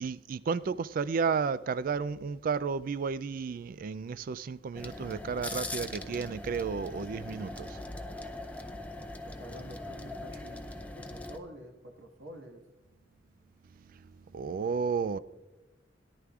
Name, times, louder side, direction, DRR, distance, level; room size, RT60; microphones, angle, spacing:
voice 1, 0.0-7.8 14.3-15.2, right 5 dB, 45° right, 0.3 m, -32 dB
sound 1, 4.7-11.4, left 2 dB, 10° left, 0.5 m, -41 dB
voice 2, 9.0-12.6, equal, 80° right, 1.6 m, -48 dB
17.5 x 11.0 x 2.4 m
head